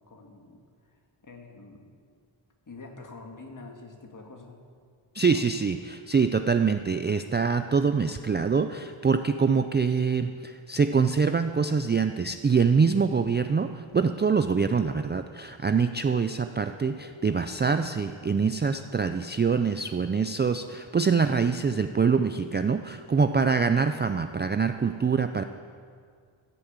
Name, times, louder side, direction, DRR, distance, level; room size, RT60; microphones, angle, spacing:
voice 1, 0.1-0.6 1.2-1.9 2.7-4.6 5.3-5.5 23.2-23.5, left 3 dB, 40° left, 2 dB, 1.9 m, -45 dB
voice 2, 5.1-25.4, right 5 dB, 25° right, 8 dB, 0.3 m, -25 dB
15.5 x 7.0 x 8.0 m, 2.1 s
wide cardioid pair, 130°, 49 cm